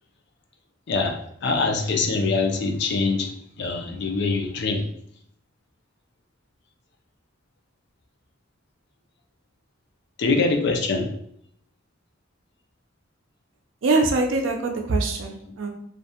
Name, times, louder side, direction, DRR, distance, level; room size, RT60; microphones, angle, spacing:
voice 1, 0.9-4.9 10.2-11.1, left 3 dB, 60° left, 3 dB, 0.4 m, -24 dB
voice 2, 13.8-15.7, right 3 dB, 80° right, 3 dB, 0.5 m, -23 dB
2.5 x 2.1 x 2.7 m, 0.68 s
head